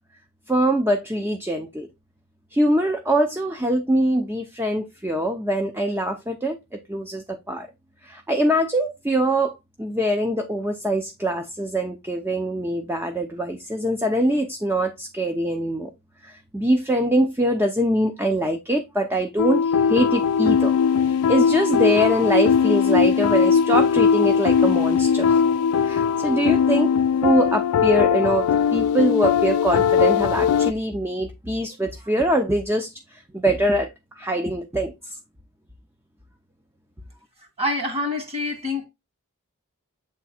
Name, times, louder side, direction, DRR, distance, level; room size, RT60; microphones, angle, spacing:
voice 1, 0.5-1.9 2.5-7.7 8.0-15.9 16.2-25.4 25.8-26.9 27.2-33.9 34.2-35.2, right 1 dB, 10° right, 0.7 m, -23 dB
sound 1, 19.4-30.7, left 7 dB, 75° left, 0.3 m, -19 dB
voice 2, 37.6-38.9, left 2 dB, 25° right, 2.4 m, -26 dB
8.1 x 3.7 x 4.3 m
head